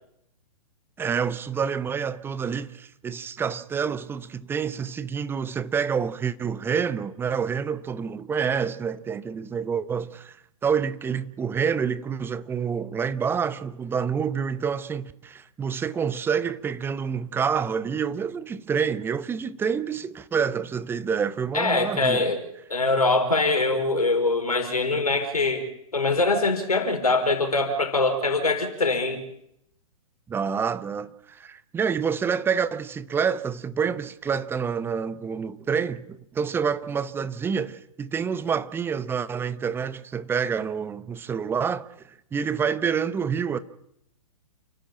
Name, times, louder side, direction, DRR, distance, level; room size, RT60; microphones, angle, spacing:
voice 1, 1.0-10.4 10.6-22.3 30.3-43.6, right 6 dB, 10° right, 0.8 m, -28 dB
voice 2, 21.5-22.4 22.7-25.6 25.9-29.2, left 3 dB, 85° left, 4.9 m, -23 dB
29.0 x 11.5 x 8.8 m
figure-of-eight pair, 115°, 19 cm